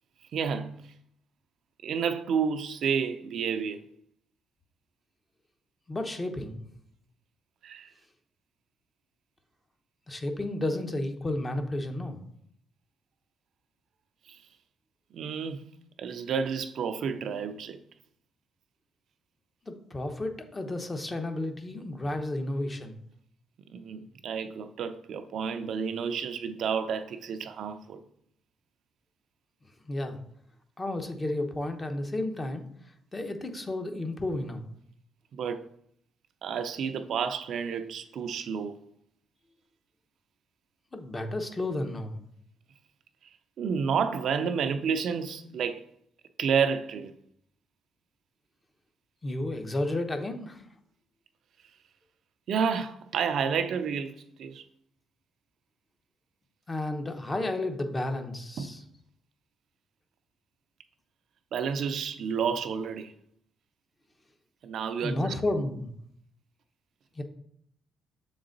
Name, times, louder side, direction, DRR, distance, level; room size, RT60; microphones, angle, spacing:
voice 1, 0.3-0.8 1.8-3.8 7.6-7.9 15.1-15.7 16.0-17.8 23.7-28.0 35.3-35.6 36.4-38.8 43.6-45.8 46.4-47.1 52.5-54.6 58.6-58.8 61.5-63.1 64.6-65.3, right 6 dB, 70° right, 0.4 m, -30 dB
voice 2, 5.9-6.6 10.1-12.2 19.7-23.0 29.8-30.2 30.8-32.6 33.1-34.6 40.9-42.2 49.2-50.6 56.7-58.8 65.0-65.9 67.2-67.3, left 1 dB, 25° left, 0.8 m, -32 dB
6.6 x 3.8 x 3.9 m
cardioid pair, 90°, 0 cm